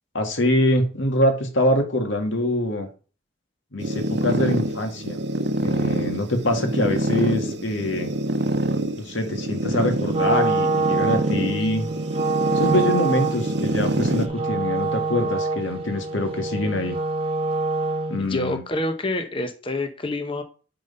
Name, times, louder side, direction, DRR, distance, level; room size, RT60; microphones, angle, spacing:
voice 1, 0.1-2.9 3.7-5.2 5.6-8.1 9.0-11.9 12.5-17.0 18.1-18.6, left 1 dB, 70° left, 1.8 m, -24 dB
sound 1, 3.8-14.3, right 1 dB, 55° right, 0.8 m, -26 dB
Wind instrument woodwind instrument, 10.1-18.3, right 3 dB, 30° right, 1.2 m, -25 dB
voice 2, 18.2-20.4, left 2 dB, 25° left, 0.8 m, -27 dB
9.0 x 3.9 x 5.4 m
head